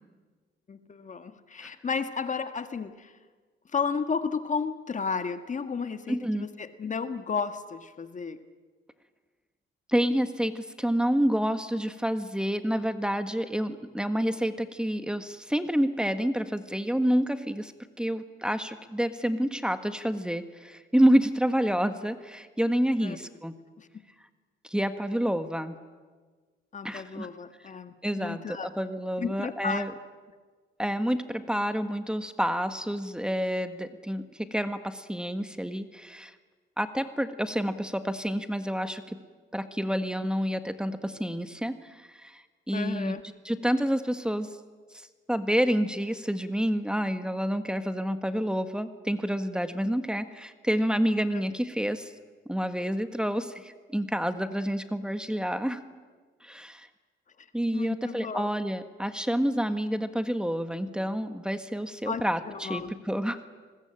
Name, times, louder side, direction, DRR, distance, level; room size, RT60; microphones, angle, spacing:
voice 1, 0.7-3.2 3.7-8.4 23.0-23.2 23.8-23.9 26.7-28.7 29.2-29.8 42.7-43.2 51.3-51.4 57.4-57.5 57.7-58.6 62.0-62.9, left 5 dB, 40° left, 9 dB, 1.7 m, -33 dB
voice 2, 6.1-6.5 9.9-17.7 18.0-23.5 24.6-25.8 26.8-27.3 28.0-29.9 30.8-36.3 36.8-39.2 39.5-43.2 43.4-44.5 44.9-52.1 52.5-55.8 56.4-56.9 57.5-63.4, equal, 5° right, 9 dB, 1.6 m, -28 dB
30.0 x 21.0 x 9.1 m, 1.4 s
cardioid pair, 90°, 20 cm